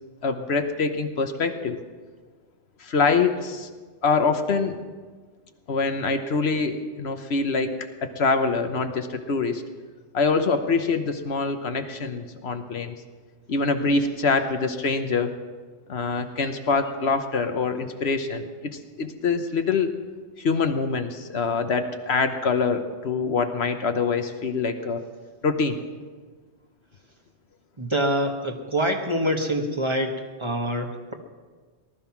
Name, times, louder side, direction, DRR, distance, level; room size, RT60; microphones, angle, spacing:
voice 1, 0.2-1.8 2.8-3.7 4.0-4.8 5.7-9.6 10.1-13.0 13.5-15.3 15.9-20.0 20.4-25.0 25.4-25.8, left 4 dB, 70° left, 7 dB, 1.2 m, -25 dB
voice 2, 27.8-31.1, equal, 25° right, 3 dB, 1.3 m, -25 dB
19.0 x 12.5 x 5.9 m, 1.4 s
omnidirectional pair, 1.2 m